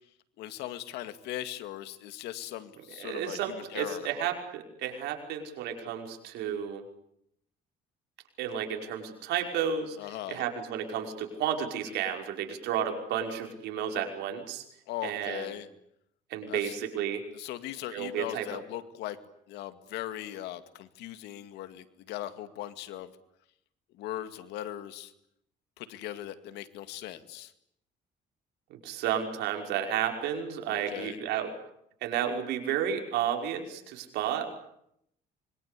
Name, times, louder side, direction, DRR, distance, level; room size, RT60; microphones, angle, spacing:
voice 1, 0.4-4.1 10.0-10.4 14.9-15.7 16.5-16.7 17.3-19.2 19.5-23.1 24.0-25.1 25.8-27.5 30.7-31.2, left 13 dB, 85° left, 11 dB, 2.2 m, -39 dB
voice 2, 3.0-6.8 8.4-10.0 10.3-14.6 15.0-15.5 16.3-17.2 17.9-18.5 28.7-31.5 32.0-34.5, right 9 dB, 85° right, 3 dB, 5.5 m, -32 dB
25.5 x 23.5 x 8.4 m, 0.74 s
cardioid pair, 110°, 17 cm